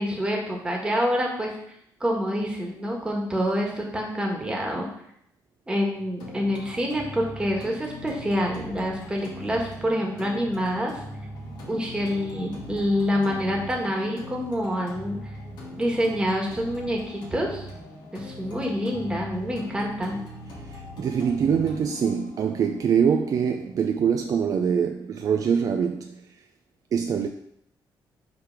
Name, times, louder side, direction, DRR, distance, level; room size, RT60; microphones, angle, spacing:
voice 1, 0.0-1.6 2.0-4.9 5.7-11.0 11.7-15.3 15.8-17.6 18.1-20.2, equal, 10° right, 1.6 m, -27 dB
sound 1, 6.2-24.2, left 1 dB, 70° left, 2.0 m, -41 dB
voice 2, 11.4-11.7 13.2-13.3 15.5-15.7 20.6-26.3 26.9-27.3, right 7 dB, 50° right, 0.4 m, -24 dB
5.8 x 3.4 x 5.9 m
cardioid pair, 120°, 8 cm